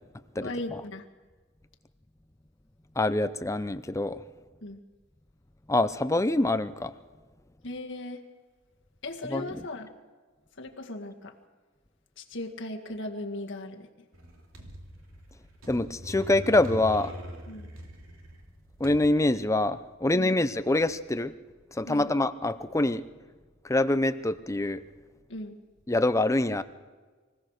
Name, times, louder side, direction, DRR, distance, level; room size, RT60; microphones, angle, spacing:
voice 1, 0.4-1.1 4.6-4.8 7.6-8.2 9.0-9.9 10.5-11.4 12.2-13.9 17.5-17.7 20.1-20.4 21.8-22.1 25.3-25.6, left 2 dB, 60° left, 3 dB, 1.9 m, -37 dB
voice 2, 3.0-4.2 5.7-6.9 9.3-9.5 15.7-17.1 18.8-21.3 21.7-23.0 23.6-24.8 25.9-26.6, left 2 dB, 15° left, 12 dB, 0.6 m, -25 dB
sound 1, 14.1-19.1, equal, 90° right, 2.8 m, -41 dB
24.5 x 16.5 x 6.5 m, 1.4 s
head